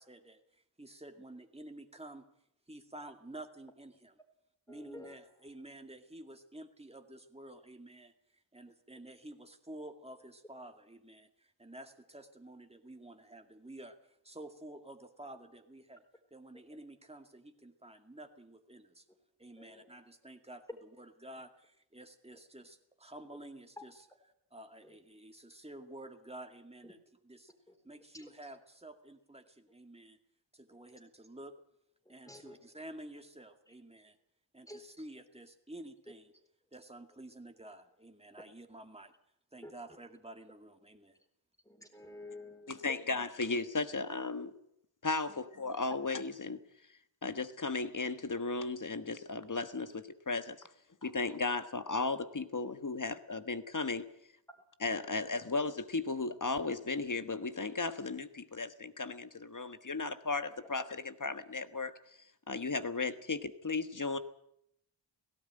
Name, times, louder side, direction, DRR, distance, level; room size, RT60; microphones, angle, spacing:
voice 1, 0.0-2.3 2.7-4.2 4.7-16.0 16.3-19.1 19.4-24.1 24.5-27.0 27.2-27.5 27.8-30.2 30.5-31.5 32.1-34.2 34.5-36.5 36.7-39.1 39.5-41.2, right 1 dB, 15° right, 5 dB, 2.1 m, -51 dB
voice 2, 4.7-5.2 19.6-19.9 24.8-25.0 26.8-26.9 28.1-28.3 30.7-30.8 32.1-32.6 34.7-35.0 39.6-39.7 41.7-43.0 45.3-45.4 54.5-54.6, left 2 dB, 5° left, 5 dB, 3.9 m, -50 dB
voice 3, 42.7-44.5 45.0-46.6 47.2-50.6 51.0-54.0 54.8-61.9 62.5-64.2, left 3 dB, 45° left, 10 dB, 1.4 m, -35 dB
18.0 x 17.0 x 9.0 m, 0.76 s
wide cardioid pair, 85°, 44 cm